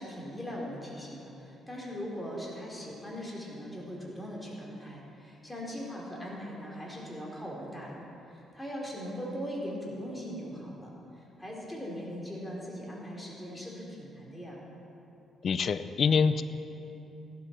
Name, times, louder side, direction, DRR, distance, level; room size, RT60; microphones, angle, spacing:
voice 1, 0.0-14.6, equal, 10° left, -3 dB, 3.7 m, -40 dB
voice 2, 15.4-16.4, left 5 dB, 55° left, 13 dB, 0.6 m, -25 dB
15.5 x 12.0 x 4.5 m, 2.9 s
cardioid pair, 90°, 0 cm